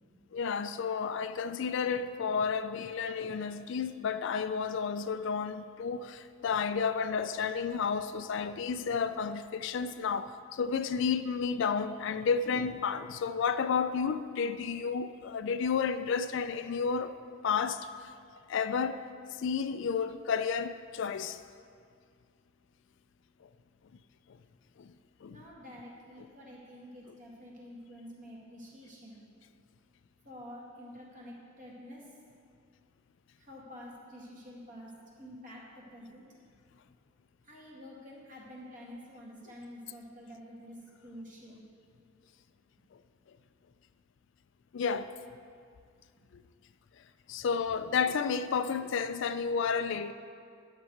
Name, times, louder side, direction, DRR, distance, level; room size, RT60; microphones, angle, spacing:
voice 1, 0.3-17.1 17.4-17.9 18.5-19.0 19.4-21.4 24.8-24.9 25.2-25.4 44.7-45.1 47.3-50.1, left 6 dB, 60° left, 0.3 m, -31 dB
voice 2, 25.2-29.2 30.2-32.1 33.4-36.3 37.4-41.6, equal, 35° right, 1.8 m, -48 dB
11.0 x 6.8 x 4.6 m
head